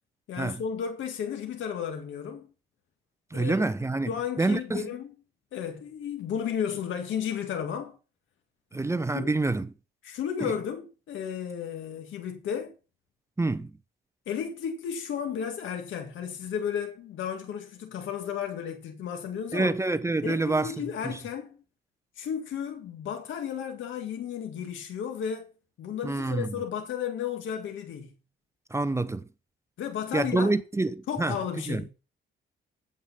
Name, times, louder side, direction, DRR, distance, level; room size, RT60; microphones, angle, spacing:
voice 1, 0.3-2.5 3.3-3.6 4.1-5.1 5.5-8.0 9.1-9.3 10.0-12.8 14.3-19.7 20.2-21.6 22.2-25.5 25.8-28.1 29.8-30.5 31.1-31.9, left 8 dB, 75° left, 2.0 m, -33 dB
voice 2, 3.3-4.1 4.4-4.9 8.7-9.7 10.4-10.5 13.4-13.7 19.5-20.7 26.0-26.6 28.7-29.3 30.1-31.4 31.7-31.8, right 2 dB, 15° right, 0.8 m, -27 dB
9.0 x 8.1 x 5.5 m
cardioid pair, 90°, 20 cm